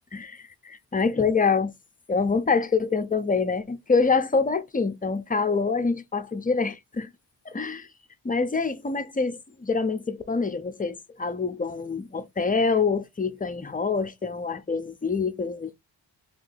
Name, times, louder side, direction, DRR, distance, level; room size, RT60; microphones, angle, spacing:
voice 1, 0.1-1.7 2.1-7.1 7.5-7.9 8.2-15.7, left 4 dB, 20° left, 0.4 m, -26 dB
2.9 x 2.7 x 4.0 m
wide cardioid pair, 120°, 44 cm